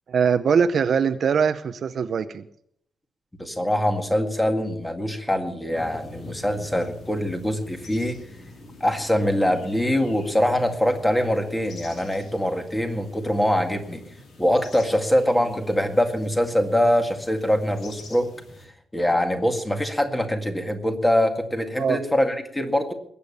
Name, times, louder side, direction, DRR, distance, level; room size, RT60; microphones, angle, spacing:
voice 1, 0.1-2.5 21.8-22.0, right 6 dB, 50° right, 11 dB, 0.7 m, -22 dB
voice 2, 3.4-8.2 8.8-14.0 14.4-18.3 18.9-22.9, equal, 5° left, 5 dB, 2.0 m, -23 dB
sound 1, 5.7-18.7, left 2 dB, 65° left, 4.8 m, -44 dB
21.0 x 8.5 x 7.1 m, 0.68 s
wide cardioid pair, 150°, 0 cm